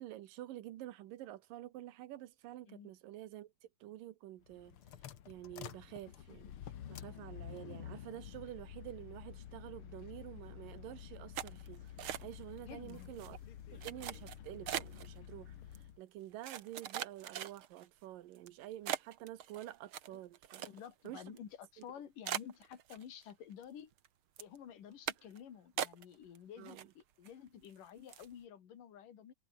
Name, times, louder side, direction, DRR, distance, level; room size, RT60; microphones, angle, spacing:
voice 1, 0.0-3.5 3.8-4.8 5.3-11.8 12.2-13.4 13.7-15.6 16.0-20.7 21.0-21.2 26.6-26.9, right 14 dB, 80° right, 2.9 m, -49 dB
sound 1, 4.4-16.0, left 10 dB, 55° left, 1.7 m, -50 dB
sound 2, 11.3-12.6 12.9-13.3 13.8-15.1 15.7-15.8 16.4-17.9 18.4-18.5 18.9-21.1 21.4-21.5 21.8-21.9 22.2-23.3 23.6-24.1 24.4-24.6 25.1-25.4 25.8-26.4 26.6-27.3 27.6-27.8 28.1-28.3, right 10 dB, 60° right, 1.5 m, -41 dB
voice 2, 12.6-13.1 20.1-20.2 20.6-23.9 24.4-29.3, left 9 dB, 75° left, 4.1 m, -51 dB
omnidirectional pair, 3.8 m